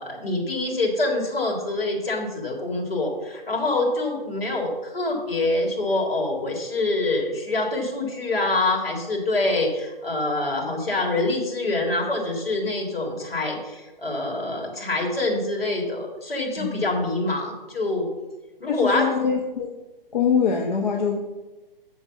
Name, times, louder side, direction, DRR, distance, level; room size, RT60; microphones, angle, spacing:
voice 1, 0.0-18.1 18.6-19.2, left 2 dB, 75° left, -1 dB, 3.9 m, -25 dB
voice 2, 18.7-19.8 20.1-21.2, left 6 dB, 55° left, 2 dB, 1.3 m, -23 dB
7.8 x 7.0 x 7.2 m, 1.1 s
figure-of-eight pair, 135°, 29 cm